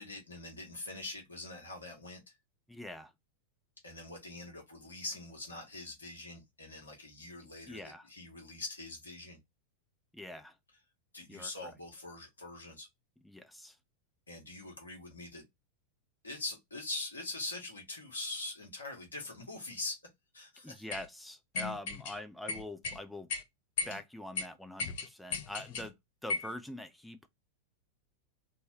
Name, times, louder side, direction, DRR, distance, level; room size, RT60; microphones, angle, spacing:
voice 1, 0.0-2.4 3.8-9.4 11.1-12.9 14.3-15.4 16.2-20.0 20.3-20.8, left 2 dB, 75° left, 1.1 m, -43 dB
voice 2, 2.7-3.1 7.6-8.1 10.1-10.6 11.3-11.7 13.2-13.8 20.6-23.3 23.8-26.0 26.2-27.3, left 1 dB, 5° left, 0.5 m, -44 dB
sound 1, 20.9-21.1 21.5-22.2 22.5-23.0 23.3-23.4 23.8-24.0 24.4-24.5 24.8-25.9 26.3-26.5, left 4 dB, 55° left, 0.6 m, -36 dB
3.3 x 2.1 x 2.8 m
figure-of-eight pair, 90°, 0 cm